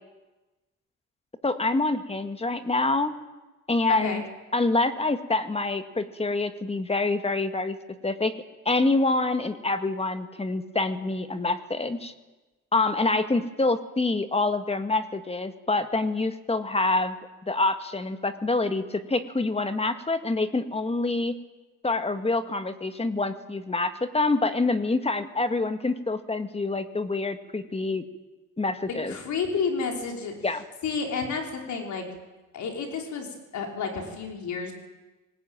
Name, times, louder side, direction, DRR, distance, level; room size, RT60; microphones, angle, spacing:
voice 1, 1.4-3.1 3.7-4.2 4.5-7.8 8.0-8.3 8.7-12.1 12.7-17.2 17.4-21.3 21.8-28.0 28.6-29.1 30.4-30.6, left 3 dB, 20° left, 9 dB, 2.0 m, -26 dB
voice 2, 3.9-4.2 28.9-30.3 30.8-32.1 32.5-34.7, left 5 dB, 70° left, 3 dB, 5.4 m, -31 dB
24.5 x 19.5 x 9.2 m, 1.2 s
cardioid pair, 90°, 30 cm